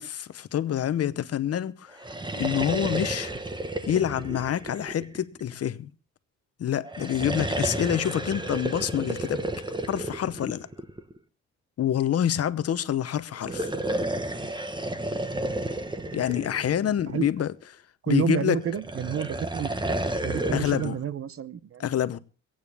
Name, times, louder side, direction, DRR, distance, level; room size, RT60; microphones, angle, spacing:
voice 1, 0.0-2.0 2.3-3.3 3.9-5.9 6.6-9.4 9.9-10.7 11.8-13.7 16.1-17.5 18.1-18.6 20.5-21.0 21.8-22.2, left 10 dB, 50° left, 0.8 m, -27 dB
sound 1, 1.9-5.5 6.8-11.2 13.3-17.3 18.6-20.9, right 1 dB, 15° right, 1.3 m, -32 dB
voice 2, 18.0-19.7 20.2-21.8, right 9 dB, 45° right, 0.8 m, -29 dB
24.5 x 8.9 x 3.5 m
cardioid pair, 90°, 30 cm